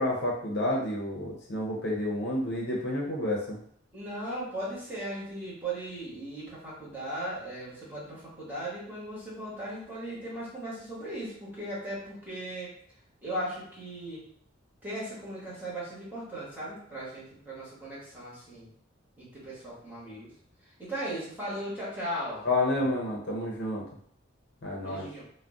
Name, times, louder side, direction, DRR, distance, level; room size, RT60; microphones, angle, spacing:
voice 1, 0.0-3.6 22.4-23.8 24.6-25.1, left 1 dB, 55° left, -2 dB, 0.6 m, -29 dB
voice 2, 3.9-12.7 13.2-14.3 14.8-18.7 19.2-20.3 20.8-22.4 24.8-25.2, right 1 dB, 10° right, -9 dB, 1.1 m, -37 dB
2.4 x 2.1 x 3.5 m, 0.64 s
head